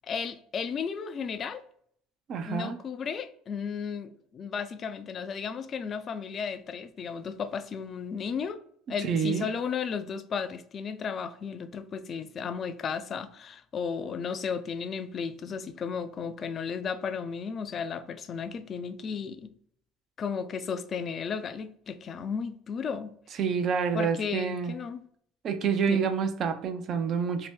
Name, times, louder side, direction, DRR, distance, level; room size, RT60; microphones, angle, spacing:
voice 1, 0.1-1.6 2.4-8.6 8.9-19.5 20.2-23.1 23.9-25.0 25.9-26.0, left 6 dB, 40° left, 0.3 m, -34 dB
voice 2, 2.3-2.8 9.0-9.5 23.4-24.7 25.4-27.5, right 6 dB, 50° right, 0.4 m, -28 dB
2.7 x 2.1 x 3.4 m
supercardioid pair, 90°, 0 cm